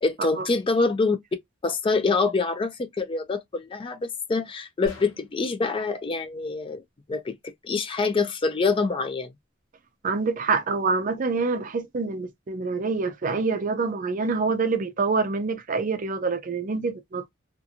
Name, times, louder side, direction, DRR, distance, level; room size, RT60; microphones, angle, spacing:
voice 1, 0.0-1.2 1.6-6.8 7.1-9.3, left 3 dB, 25° left, 0.3 m, -25 dB
sound 1, 4.8-5.6, left 1 dB, 90° left, 0.9 m, -44 dB
voice 2, 10.0-17.3, right 4 dB, 40° right, 0.4 m, -26 dB
2.4 x 2.4 x 2.7 m
head